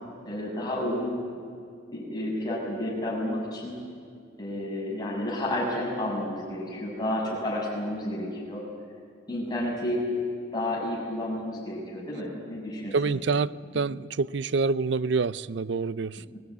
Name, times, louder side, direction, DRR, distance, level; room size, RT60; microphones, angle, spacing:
voice 1, 0.2-1.2 1.9-3.8 4.4-8.6 9.3-10.1 10.5-13.2 16.3-16.4, left 1 dB, 20° left, -4 dB, 6.6 m, -31 dB
voice 2, 12.9-16.2, right 4 dB, 65° right, 18 dB, 0.5 m, -27 dB
22.5 x 17.5 x 9.5 m, 2.3 s
head